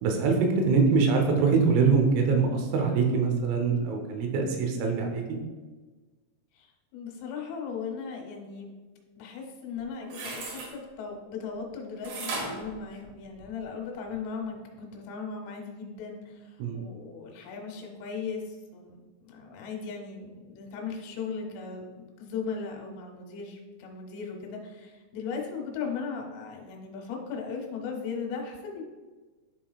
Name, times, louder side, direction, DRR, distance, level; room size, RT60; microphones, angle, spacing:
voice 1, 0.0-5.2 16.6-16.8, right 5 dB, 85° right, 2 dB, 3.5 m, -24 dB
voice 2, 0.7-1.0 6.5-8.7 9.2-28.8, left 5 dB, 80° left, 1 dB, 3.4 m, -37 dB
sound 1, 9.8-10.7 12.1-13.6 14.1-14.2, right 3 dB, 70° right, 3.5 m, -36 dB
11.5 x 3.8 x 2.3 m, 1.3 s
omnidirectional pair, 5.7 m